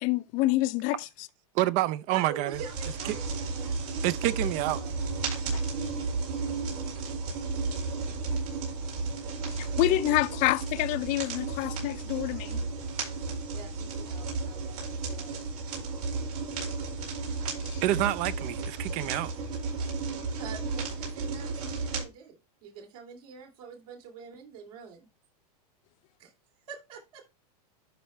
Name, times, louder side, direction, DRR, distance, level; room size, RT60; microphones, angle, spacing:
voice 1, 0.0-1.3 5.5-5.6 9.5-12.6 17.6-17.8, left 17 dB, 40° left, 0.5 m, -28 dB
voice 2, 1.5-2.6 4.0-4.8 17.8-19.3, right 15 dB, 40° right, 0.4 m, -27 dB
voice 3, 2.1-4.9 13.5-15.3 20.4-25.1 26.7-27.2, right 6 dB, 70° right, 2.7 m, -46 dB
sound 1, 2.5-22.0, right 4 dB, 85° right, 5.0 m, -33 dB
11.5 x 4.4 x 3.2 m
supercardioid pair, 135°, 20 cm